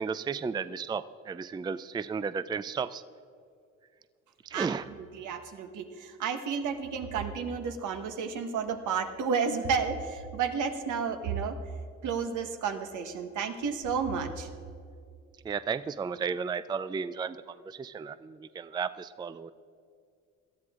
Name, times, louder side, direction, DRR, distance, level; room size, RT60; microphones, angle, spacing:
voice 1, 0.0-3.0 4.4-4.9 15.4-19.5, right 5 dB, 15° right, 14 dB, 0.4 m, -34 dB
voice 2, 5.1-11.6 12.0-14.5, right 6 dB, 80° right, 6 dB, 1.3 m, -31 dB
18.5 x 12.5 x 3.7 m, 2.3 s
cardioid pair, 90°, 30 cm